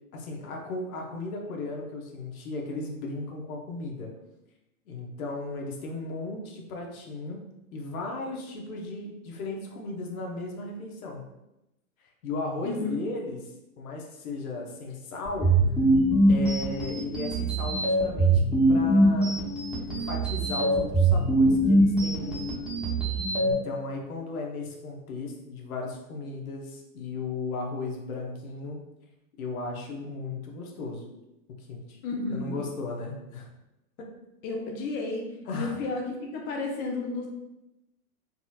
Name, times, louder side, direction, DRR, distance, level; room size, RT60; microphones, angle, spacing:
voice 1, 0.1-4.1 4.9-7.4 7.7-11.2 12.2-15.5 16.3-18.4 18.7-19.3 19.9-22.4 23.4-28.8 29.4-31.0 31.6-32.0 32.3-33.5 35.5-35.8, left 3 dB, 70° left, 1 dB, 1.0 m, -36 dB
voice 2, 12.6-13.0 32.0-32.7 34.4-35.3 35.5-36.1 36.3-37.3, left 3 dB, 25° left, 1 dB, 0.4 m, -32 dB
sound 1, 15.3-23.5, right 1 dB, ahead, 0.9 m, -23 dB
4.1 x 2.7 x 2.4 m, 0.92 s
hypercardioid pair, 110°, 44 cm